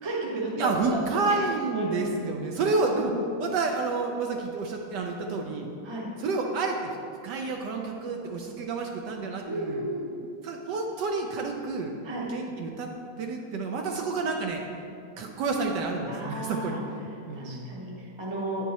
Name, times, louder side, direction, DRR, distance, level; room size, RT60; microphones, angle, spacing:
voice 1, 0.0-1.0 1.7-2.1 2.9-3.2 5.8-6.1 9.5-10.1 12.0-12.3 16.1-16.8 17.3-18.7, right 1 dB, 20° right, -3 dB, 0.7 m, -33 dB
voice 2, 0.6-3.1 3.4-5.7 6.2-9.8 10.4-11.9 12.3-12.9 13.2-14.6 15.2-17.8, right 3 dB, 75° right, 2 dB, 1.1 m, -29 dB
8.8 x 4.6 x 4.1 m, 2.5 s
omnidirectional pair, 2.1 m